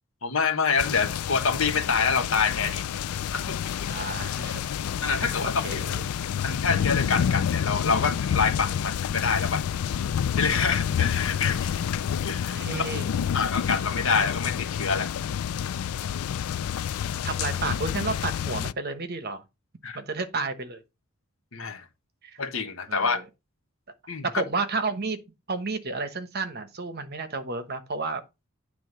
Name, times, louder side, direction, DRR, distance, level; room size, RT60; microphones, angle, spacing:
voice 1, 0.2-2.8 3.3-3.7 5.0-5.8 6.4-9.6 10.4-11.8 12.2-12.8 13.3-15.1 19.8-20.0 21.5-21.8 22.4-23.2 24.1-24.2, left 5 dB, 60° left, 1.3 m, -26 dB
sound 1, 0.8-18.7, left 8 dB, 80° left, 0.4 m, -29 dB
voice 2, 3.9-4.6 5.2-6.1 12.6-13.3 17.2-19.4 19.9-20.8 22.2-22.4 22.9-23.2 24.2-25.2 25.5-28.2, right 3 dB, 45° right, 1.2 m, -31 dB
9.6 x 3.4 x 6.7 m
head